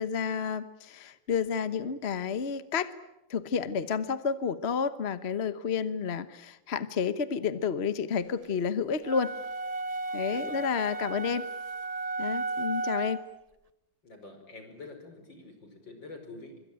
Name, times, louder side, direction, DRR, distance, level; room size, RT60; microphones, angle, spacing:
voice 1, 0.0-2.9 3.3-9.4 10.1-11.5 12.2-13.2, left 6 dB, 40° left, 13 dB, 1.1 m, -30 dB
sound 1, 9.0-13.3, right 3 dB, 30° right, 0.7 m, -34 dB
voice 2, 10.3-10.6 14.0-16.6, left 2 dB, 75° left, 6 dB, 6.0 m, -46 dB
26.0 x 24.0 x 9.0 m, 0.93 s
omnidirectional pair, 2.0 m